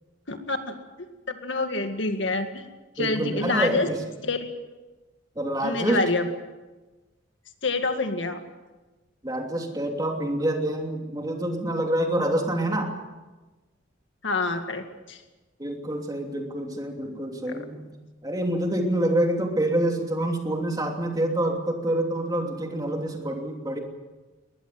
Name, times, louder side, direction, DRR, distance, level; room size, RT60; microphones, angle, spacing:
voice 1, 0.3-0.7 1.3-2.6 3.0-3.9 4.2-4.5 5.6-6.3 7.6-8.4 14.2-15.2 17.5-17.6, left 3 dB, 60° left, 6 dB, 2.1 m, -27 dB
voice 2, 3.0-4.0 5.4-6.0 9.2-12.9 15.6-17.9 18.2-23.8, right 1 dB, 20° right, 2 dB, 3.0 m, -27 dB
22.0 x 20.0 x 7.9 m, 1.2 s
head